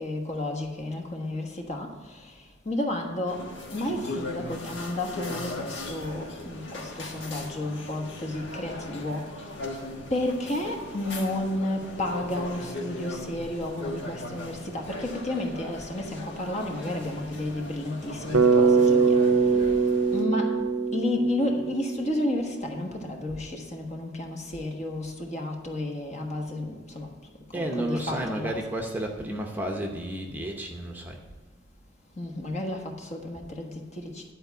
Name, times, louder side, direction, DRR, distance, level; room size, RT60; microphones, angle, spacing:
voice 1, 0.0-3.5 3.7-9.3 10.1-19.4 20.1-20.6 20.9-27.1 27.5-28.5 32.2-34.3, left 1 dB, 35° left, 2 dB, 1.3 m, -32 dB
sound 1, 3.3-20.2, left 2 dB, 60° left, 1.4 m, -38 dB
Bass guitar, 18.3-22.5, right 5 dB, 80° right, 0.7 m, -22 dB
voice 2, 27.5-31.2, right 1 dB, 10° right, 1 dB, 0.8 m, -32 dB
11.0 x 4.6 x 8.0 m, 1.3 s
head